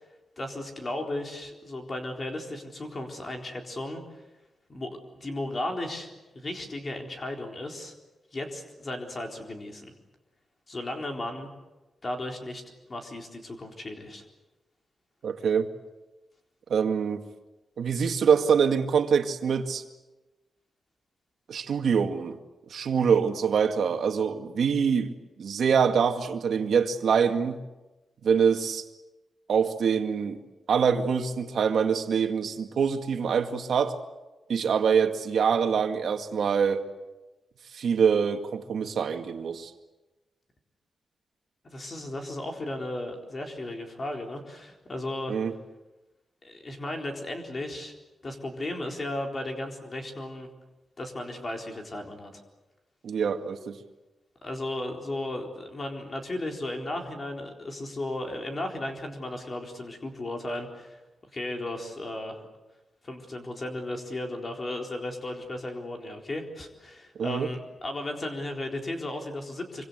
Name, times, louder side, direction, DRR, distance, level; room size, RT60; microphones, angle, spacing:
voice 1, 0.4-4.0 4.7-7.9 8.3-9.9 10.7-11.5 12.0-12.6 12.9-14.2 41.6-45.4 46.4-47.9 48.2-50.5 51.0-52.4 54.4-61.0 61.3-62.5 63.0-69.9, left 1 dB, 30° left, 3 dB, 4.0 m, -35 dB
voice 2, 15.2-15.7 16.7-17.2 17.8-19.8 21.5-22.4 22.7-27.6 28.2-28.8 29.5-30.4 30.7-34.0 34.5-36.8 37.7-39.7 45.3-45.5 53.0-53.8 67.2-67.5, right 6 dB, 70° right, 6 dB, 2.1 m, -25 dB
26.5 x 25.0 x 8.1 m, 1.1 s
wide cardioid pair, 170°, 0 cm